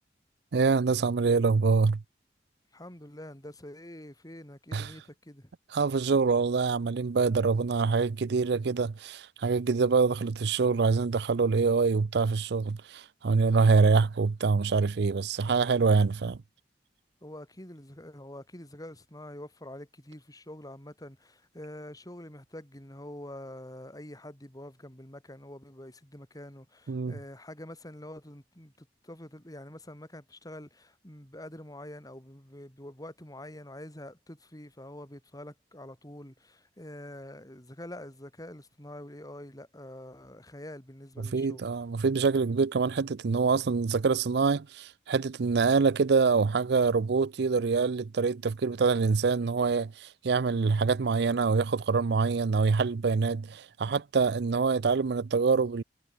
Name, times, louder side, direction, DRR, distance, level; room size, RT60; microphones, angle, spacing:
voice 1, 0.5-2.0 4.7-5.0 5.7-16.4 26.9-27.2 41.2-55.8, right 4 dB, 70° right, 0.5 m, -25 dB
voice 2, 2.7-5.5 17.2-28.7 29.0-41.7, left 1 dB, 20° left, 5.4 m, -46 dB
head